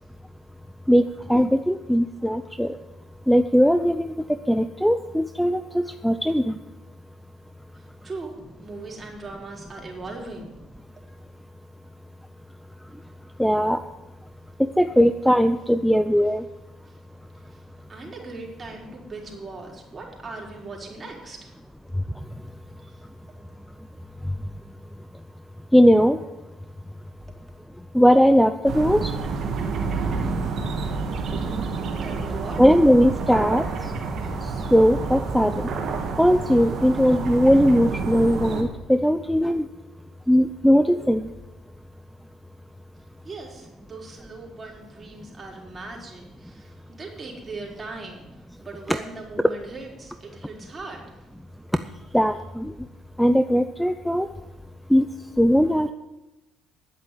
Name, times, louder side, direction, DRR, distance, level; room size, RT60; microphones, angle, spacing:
voice 1, 1.3-2.7 3.3-4.1 4.5-6.5 13.4-13.8 14.8-16.4 25.7-26.2 27.9-29.1 32.6-33.6 34.7-35.5 36.2-39.6 40.3-41.2 52.1-52.7 53.2-54.3 54.9-55.1 55.4-55.9, equal, ahead, 10 dB, 0.6 m, -19 dB
voice 2, 7.7-10.5 16.8-17.0 17.3-21.5 22.8-23.1 32.0-32.6 43.2-51.3 51.9-52.4, right 3 dB, 30° right, -1 dB, 4.4 m, -40 dB
sound 1, 28.6-38.6, right 4 dB, 55° right, 2.4 m, -29 dB
10.5 x 8.2 x 9.5 m, 1.0 s
supercardioid pair, 85°, 0 cm